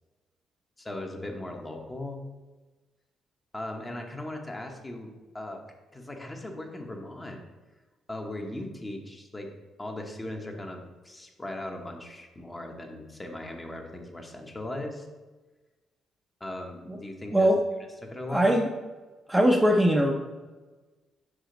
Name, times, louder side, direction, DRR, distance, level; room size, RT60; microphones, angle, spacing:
voice 1, 0.8-2.2 3.5-5.1 5.3-5.6 5.9-7.4 8.1-9.5 9.8-15.1 16.4-17.5 18.0-18.6, left 1 dB, 20° left, 2 dB, 1.0 m, -38 dB
voice 2, 18.3-18.7 19.3-20.1, equal, 10° right, 1 dB, 0.6 m, -21 dB
5.7 x 4.9 x 3.8 m, 1.2 s
cardioid pair, 90°, 0 cm